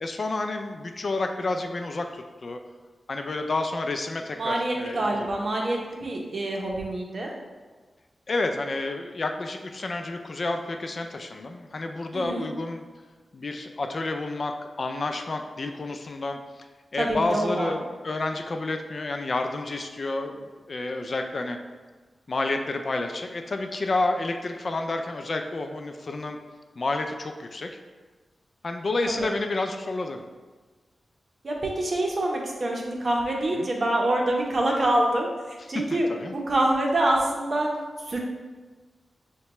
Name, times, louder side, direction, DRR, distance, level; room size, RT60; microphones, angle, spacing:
voice 1, 0.0-2.6 3.1-5.3 8.3-12.8 13.3-16.4 16.9-21.6 22.3-26.4 26.8-27.7 28.6-30.2 33.5-33.7 35.9-36.3, left 2 dB, 50° left, 5 dB, 0.3 m, -30 dB
voice 2, 4.4-7.3 12.1-12.5 17.0-17.7 29.2-29.3 31.4-37.7 38.1-38.2, right 1 dB, 50° right, -1 dB, 0.7 m, -26 dB
6.4 x 2.2 x 2.9 m, 1.3 s
wide cardioid pair, 95°, 0 cm